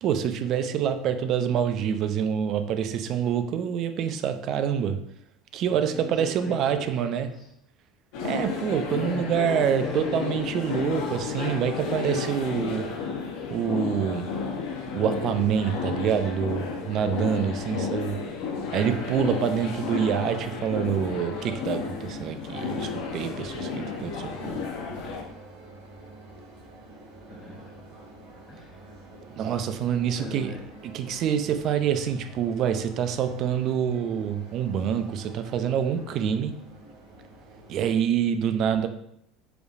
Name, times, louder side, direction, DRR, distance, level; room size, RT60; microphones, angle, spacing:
voice 1, 0.0-5.0 5.5-7.3 8.2-12.9 13.5-14.3 14.9-18.2 18.7-24.7 29.4-30.6 30.8-36.6 37.7-38.9, right 8 dB, 55° right, 9 dB, 0.4 m, -26 dB
voice 2, 5.7-7.5 8.9-10.1 27.3-28.0 28.5-28.8 30.2-30.6, left 1 dB, 20° left, -5 dB, 1.0 m, -40 dB
sound 1, 8.1-25.2, left 5 dB, 70° left, 0.7 m, -32 dB
sound 2, 18.6-38.0, right 2 dB, 90° right, 1.2 m, -48 dB
4.9 x 3.2 x 2.4 m, 0.75 s
hypercardioid pair, 90°, 0 cm